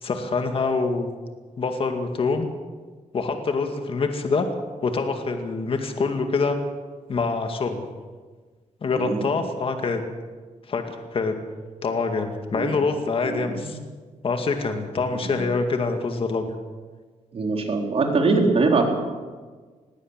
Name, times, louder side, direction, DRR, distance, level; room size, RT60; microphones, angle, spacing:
voice 1, 0.0-1.1 1.6-2.5 3.1-4.5 4.8-6.6 7.1-7.9 8.8-10.0 10.7-11.4 11.8-13.8 14.2-16.5, left 4 dB, 45° left, 5 dB, 2.1 m, -25 dB
voice 2, 9.0-9.3 12.5-12.7 13.2-13.7 15.1-15.3 17.3-18.9, right 3 dB, 50° right, 2 dB, 3.8 m, -23 dB
19.5 x 17.0 x 8.1 m, 1.4 s
wide cardioid pair, 145°, 13 cm